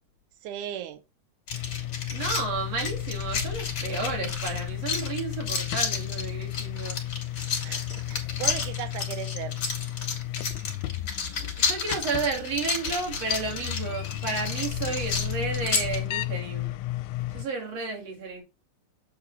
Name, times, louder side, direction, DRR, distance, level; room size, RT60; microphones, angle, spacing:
voice 1, 0.4-1.0 7.5-9.6, right 11 dB, 90° right, 2.3 m, -37 dB
sound 1, 1.5-17.4, left 15 dB, 85° left, 2.0 m, -34 dB
sound 2, 1.5-16.0, left 5 dB, 40° left, 2.5 m, -32 dB
voice 2, 2.1-7.0 11.4-16.7 17.3-18.4, right 4 dB, 55° right, 3.6 m, -32 dB
8.2 x 4.3 x 4.0 m
omnidirectional pair, 3.5 m